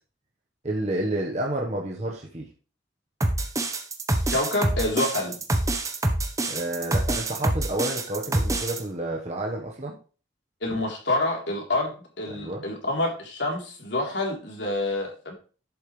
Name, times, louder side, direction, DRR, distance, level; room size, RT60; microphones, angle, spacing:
voice 1, 0.6-2.5 6.5-10.0 12.3-12.6, right 1 dB, 35° right, -1 dB, 1.3 m, -30 dB
sound 1, 3.2-8.8, right 2 dB, 15° right, 1.0 m, -26 dB
voice 2, 4.3-5.4 10.6-15.3, left 2 dB, 75° left, 0 dB, 3.6 m, -27 dB
11.0 x 8.5 x 3.3 m, 0.36 s
head